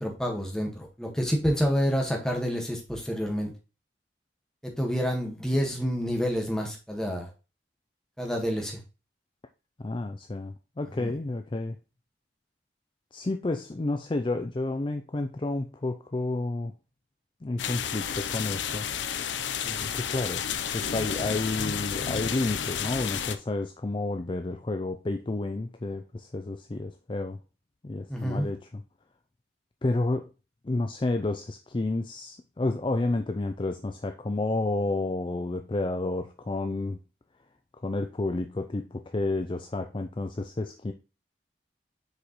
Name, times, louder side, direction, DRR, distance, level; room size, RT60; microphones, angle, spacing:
voice 1, 0.0-3.5 4.6-7.3 8.2-8.8 11.0-11.1 19.6-19.9 28.1-28.5, equal, 5° left, 1.6 m, -28 dB
voice 2, 9.8-11.8 13.1-16.7 17.4-19.3 19.8-20.5 20.7-27.4 27.8-28.8 29.8-30.3 30.6-37.0 37.8-40.9, left 2 dB, 25° left, 0.4 m, -30 dB
sound 1, 17.6-23.4, left 8 dB, 75° left, 0.6 m, -31 dB
6.6 x 5.0 x 3.1 m
head